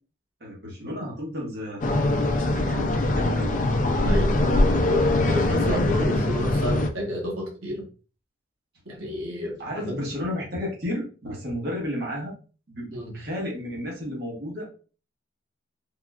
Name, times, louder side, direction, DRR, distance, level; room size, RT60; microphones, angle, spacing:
voice 1, 0.4-3.5 9.6-12.3 12.7-14.7, left 1 dB, 50° right, -4 dB, 1.1 m, -33 dB
sound 1, 1.8-6.9, left 2 dB, 40° left, 0.3 m, -22 dB
voice 2, 4.0-7.8 8.8-10.0 12.9-13.1, equal, 90° right, -2 dB, 1.2 m, -30 dB
3.6 x 2.3 x 2.2 m, 0.35 s
head